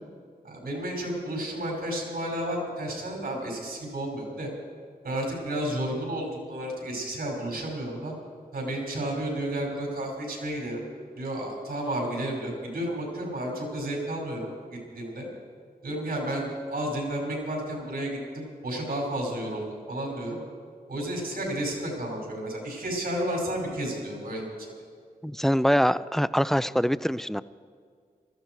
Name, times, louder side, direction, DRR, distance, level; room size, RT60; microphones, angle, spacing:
voice 1, 0.4-4.5 5.0-8.1 8.5-10.8 11.2-14.5 14.9-15.3 15.8-20.4 20.9-24.4, right 1 dB, 80° right, -1 dB, 5.3 m, -32 dB
voice 2, 25.2-27.4, equal, ahead, 16 dB, 0.4 m, -24 dB
20.0 x 14.0 x 4.7 m, 2.1 s
cardioid pair, 45°, 16 cm